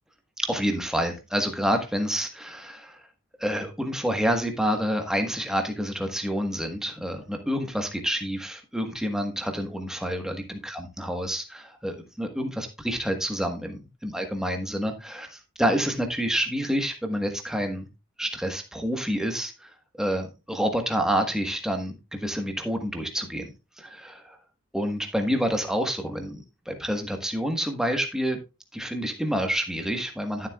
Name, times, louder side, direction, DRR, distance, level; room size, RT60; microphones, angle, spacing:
voice 1, 0.4-3.0 3.4-17.9 18.2-23.5 23.8-24.4 24.7-28.4 28.7-30.5, equal, 5° right, 4 dB, 1.3 m, -28 dB
12.5 x 7.5 x 2.3 m, 0.27 s
head